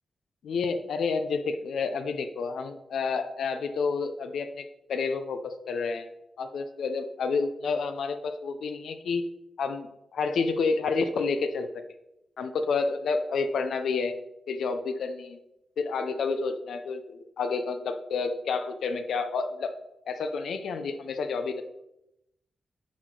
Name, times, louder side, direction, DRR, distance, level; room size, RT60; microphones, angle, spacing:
voice 1, 0.4-6.1 6.4-9.2 9.6-11.8 12.4-14.1 14.5-15.4 15.8-19.7 20.1-21.6, left 4 dB, 75° left, 9 dB, 0.7 m, -29 dB
9.5 x 6.3 x 3.9 m, 0.86 s
wide cardioid pair, 165°, 0 cm